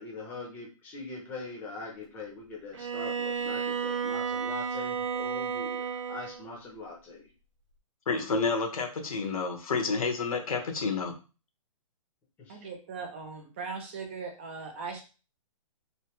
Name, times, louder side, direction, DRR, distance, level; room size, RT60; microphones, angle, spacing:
voice 1, 0.0-7.2, left 3 dB, 10° left, -2 dB, 0.7 m, -42 dB
Bowed string instrument, 2.7-6.5, right 6 dB, 60° right, 0.6 m, -32 dB
voice 2, 8.1-11.1, left 4 dB, 85° left, 4 dB, 1.1 m, -29 dB
voice 3, 12.5-15.0, right 4 dB, 20° right, 3 dB, 0.4 m, -39 dB
3.2 x 2.8 x 2.9 m, 0.34 s
hypercardioid pair, 165°, 18 cm